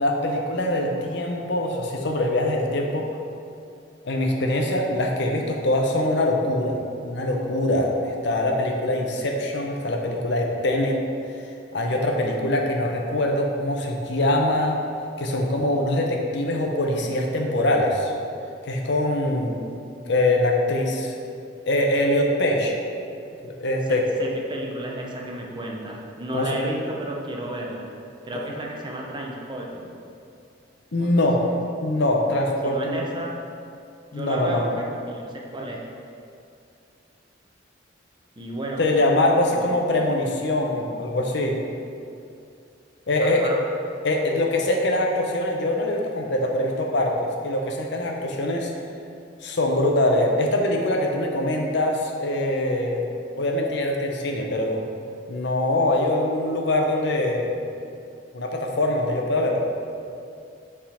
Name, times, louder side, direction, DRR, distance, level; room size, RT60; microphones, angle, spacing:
voice 1, 0.0-3.1 4.0-11.0 11.7-14.8 15.2-18.1 18.7-19.6 20.1-21.1 21.6-22.7 23.4-24.0 26.3-26.5 30.9-31.4 31.8-33.0 34.1-34.7 38.8-41.6 43.1-43.5 44.0-48.7 49.4-53.0 53.4-54.8 55.3-57.5 58.3-59.6, left 1 dB, 65° left, 1 dB, 0.7 m, -23 dB
voice 2, 23.9-27.9 28.2-30.0 30.9-31.6 32.6-33.4 34.1-35.9 38.4-38.8 39.5-39.7 43.2-43.6, right 1 dB, 25° right, -1 dB, 0.7 m, -32 dB
7.0 x 3.7 x 4.3 m, 2.5 s
head